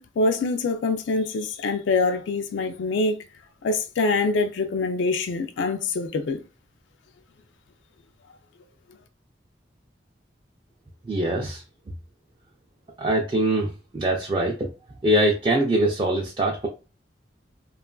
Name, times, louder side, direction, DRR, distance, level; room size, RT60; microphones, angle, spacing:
voice 1, 0.0-3.2 3.6-6.4, left 3 dB, 80° left, 0.3 m, -25 dB
voice 2, 11.0-11.6 13.0-14.7 15.0-16.7, right 1 dB, 25° right, 0.3 m, -23 dB
2.9 x 2.3 x 2.2 m
head